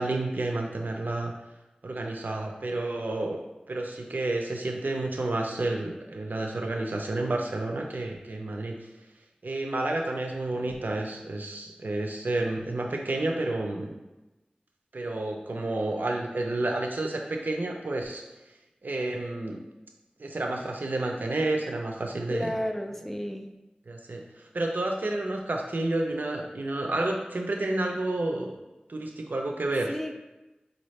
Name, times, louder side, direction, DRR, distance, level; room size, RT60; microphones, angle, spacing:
voice 1, 0.0-1.3 1.8-3.4 3.7-8.8 9.4-13.9 14.9-18.2 18.8-19.6 20.2-22.5 23.9-24.2 24.5-28.6 28.9-29.9, right 2 dB, 75° right, 1 dB, 0.5 m, -30 dB
voice 2, 22.3-23.5 29.9-30.1, equal, 10° left, 5 dB, 0.3 m, -31 dB
4.7 x 2.6 x 3.2 m, 1.0 s
wide cardioid pair, 50°, 3 cm